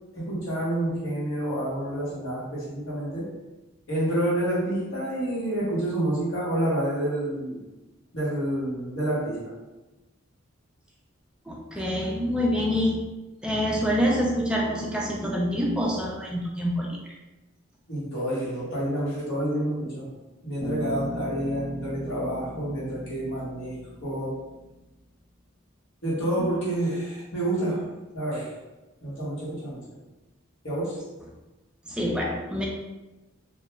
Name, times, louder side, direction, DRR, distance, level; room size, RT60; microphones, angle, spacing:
voice 1, 0.1-3.3 3.9-7.6 8.1-9.5 11.7-11.8 17.9-20.1 20.4-23.8 24.0-24.5 26.0-28.5 29.0-30.0 30.6-31.1, right 1 dB, 65° left, -7 dB, 1.1 m, -28 dB
voice 2, 11.5-13.0 13.4-17.0 31.9-32.6, equal, 5° right, -2 dB, 0.3 m, -26 dB
Bass guitar, 20.6-24.7, left 1 dB, 80° left, 0.6 m, -38 dB
2.3 x 2.2 x 2.9 m, 1.1 s
head